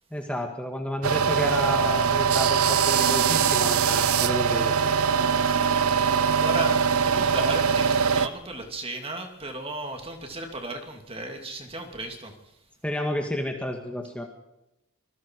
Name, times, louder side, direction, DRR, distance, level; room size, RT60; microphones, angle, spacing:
voice 1, 0.1-4.9 12.8-14.2, left 1 dB, 5° left, 2 dB, 2.0 m, -31 dB
sound 1, 1.0-8.3, right 6 dB, 75° right, 0.8 m, -22 dB
voice 2, 5.3-12.4, right 2 dB, 25° right, 4 dB, 2.7 m, -35 dB
26.0 x 21.0 x 4.8 m, 0.88 s
head